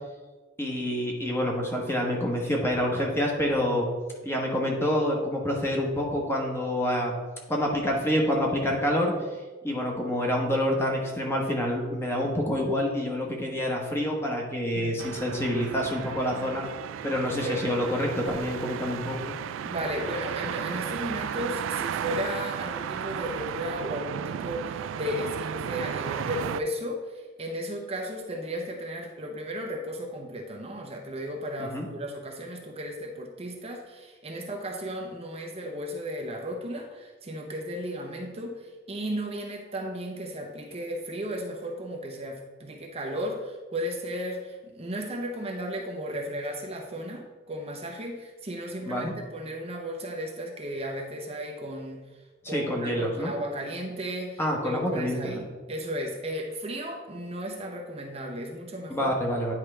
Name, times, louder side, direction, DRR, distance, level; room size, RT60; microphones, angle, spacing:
voice 1, 0.6-3.9 4.2-7.2 7.5-9.1 9.6-16.7 17.0-19.3 31.6-31.9 48.9-49.1 52.4-53.3 54.4-55.3 58.9-59.5, equal, 15° left, -1 dB, 1.2 m, -27 dB
sound 1, 15.0-26.6, right 8 dB, 80° right, 0.3 m, -34 dB
voice 2, 17.2-17.7 19.6-52.1 52.5-59.1, equal, 30° right, 1 dB, 0.7 m, -35 dB
9.9 x 4.7 x 3.3 m, 1.3 s
head